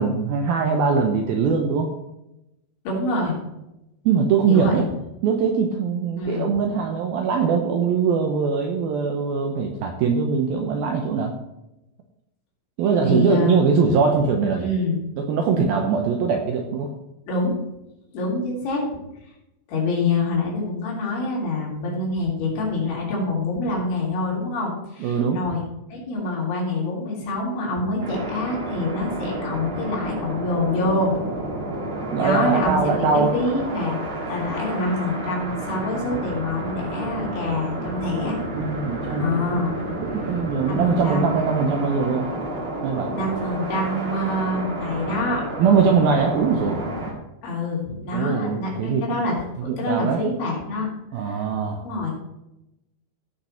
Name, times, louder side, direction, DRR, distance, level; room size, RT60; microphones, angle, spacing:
voice 1, 0.0-1.9 4.1-4.8 5.2-11.3 12.8-14.7 15.2-16.9 25.0-25.4 32.1-33.3 38.5-39.4 39.8-42.3 42.8-43.1 45.6-46.8 48.1-49.0 49.6-50.2 51.1-51.8, right 5 dB, 75° right, 3 dB, 2.2 m, -22 dB
voice 2, 2.9-3.4 4.5-4.8 6.2-6.5 12.9-14.0 14.6-15.0 17.3-17.6 18.1-18.9 19.7-25.6 25.9-31.2 32.2-34.0 34.3-38.4 39.1-39.8 40.7-41.4 43.1-45.4 47.4-50.9 51.2-51.4 51.8-52.2, left 2 dB, 80° left, -4 dB, 5.7 m, -26 dB
sound 1, 28.0-47.1, right 1 dB, 40° right, 2.1 m, -31 dB
16.5 x 5.9 x 4.3 m, 0.90 s
omnidirectional pair, 5.3 m